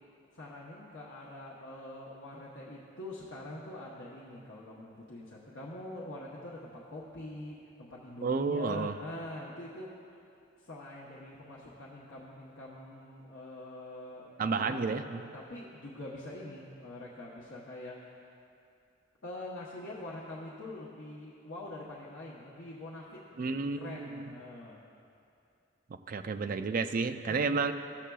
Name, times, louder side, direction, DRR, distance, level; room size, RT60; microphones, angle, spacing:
voice 1, 0.3-9.9 10.6-18.2 19.2-24.8 26.5-26.9 27.3-27.7, left 1 dB, 65° left, -6 dB, 0.9 m, -45 dB
voice 2, 8.2-8.9 14.4-15.2 23.4-24.3 26.1-27.7, right 4 dB, 45° right, 8 dB, 0.3 m, -31 dB
15.0 x 7.2 x 2.3 m, 2.6 s
head